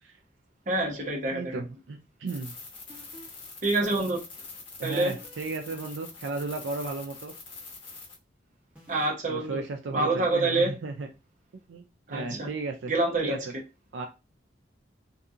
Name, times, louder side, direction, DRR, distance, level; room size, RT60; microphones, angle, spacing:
voice 1, 0.7-1.6 3.6-4.2 4.8-5.1 8.9-9.6 9.9-10.8 12.1-12.5 12.9-13.5, right 2 dB, 40° right, 0.7 m, -26 dB
voice 2, 1.3-2.5 4.8-7.3 9.3-11.1 11.7-11.8 12.1-12.9 13.2-13.5 13.9-14.1, right 3 dB, 80° right, 0.4 m, -34 dB
sound 1, 2.3-8.2, left 4 dB, 25° left, 1.0 m, -45 dB
sound 2, 2.9-3.5 5.0-5.4 5.7-6.2 8.8-9.1, left 1 dB, 10° right, 1.3 m, -50 dB
2.7 x 2.6 x 2.4 m
head